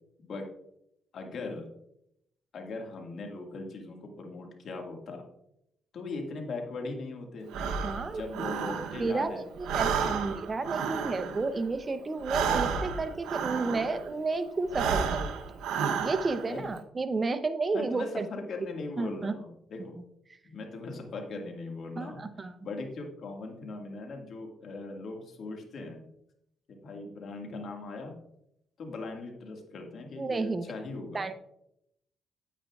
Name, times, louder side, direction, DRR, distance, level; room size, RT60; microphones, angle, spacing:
voice 1, 1.1-1.7 2.5-5.2 5.9-7.5 8.1-9.5 10.0-10.2 10.8-10.9 16.4-16.7 17.7-19.9 20.4-26.0 26.7-28.2 28.8-31.2, left 3 dB, 60° left, 2 dB, 1.7 m, -39 dB
Breathing, 7.5-9.3 9.6-14.2 14.6-16.6, right 6 dB, 85° right, 0.8 m, -31 dB
voice 2, 7.8-8.2 9.0-15.3 16.0-18.3 19.0-19.3 22.0-22.6 30.2-30.7 31.1-31.3, right 3 dB, 30° right, 10 dB, 0.7 m, -31 dB
9.2 x 8.8 x 2.3 m, 0.79 s
cardioid pair, 90°, 0 cm